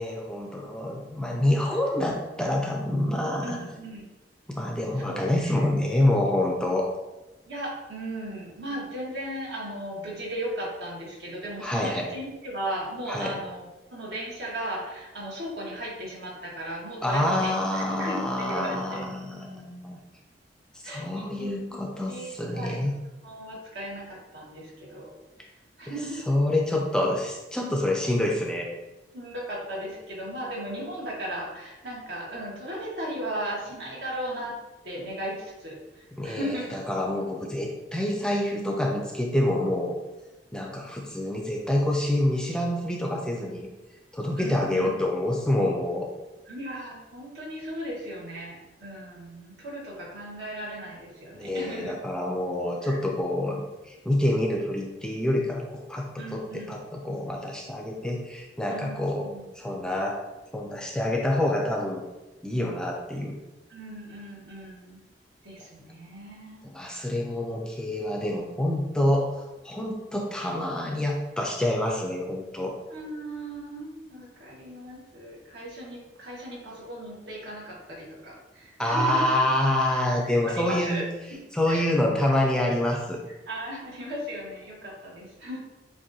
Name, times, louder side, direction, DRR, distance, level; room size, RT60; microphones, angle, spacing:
voice 1, 0.0-3.6 4.5-6.9 11.6-12.1 13.1-13.4 17.0-20.0 20.8-22.9 26.3-28.7 36.2-40.0 40.5-43.7 44.1-46.1 51.4-59.3 59.6-60.2 60.5-62.1 62.4-63.4 66.6-69.3 69.6-72.8 78.8-81.0 81.5-83.2, left 1 dB, 5° left, 0 dB, 0.4 m, -27 dB
voice 2, 3.4-4.0 4.9-5.6 7.4-19.1 20.8-21.8 22.1-22.8 23.2-25.1 25.8-26.3 29.1-34.6 34.8-36.8 44.4-45.0 46.5-52.0 52.8-53.0 56.2-56.8 58.7-59.5 63.7-65.0 65.4-66.7 72.8-79.2 80.2-81.0 81.7-82.0 83.4-85.6, right 1 dB, 70° right, -4 dB, 1.5 m, -36 dB
7.3 x 2.6 x 2.7 m, 1.1 s
head